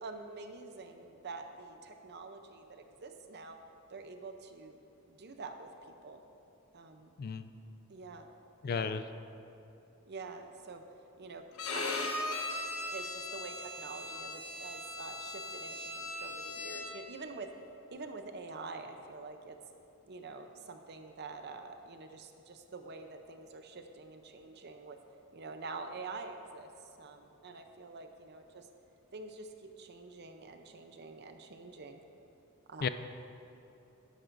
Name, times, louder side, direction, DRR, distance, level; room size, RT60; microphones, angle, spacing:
voice 1, 0.0-3.6 3.9-4.8 5.1-5.7 6.0-6.2 6.7-7.1 7.9-8.3 8.6-9.0 10.1-10.8 11.2-11.5 11.7-12.1 12.9-17.5 17.9-19.6 20.0-25.0 25.3-26.7 27.0-28.7 29.1-32.0 32.7-32.9, right 3 dB, 50° right, 6 dB, 0.7 m, -46 dB
voice 2, 7.2-7.5 8.6-9.0 32.8-32.9, left 6 dB, 45° left, 11 dB, 0.4 m, -33 dB
Bowed string instrument, 11.6-17.1, left 2 dB, 80° left, 1.2 m, -39 dB
12.5 x 10.5 x 2.6 m, 2.8 s
head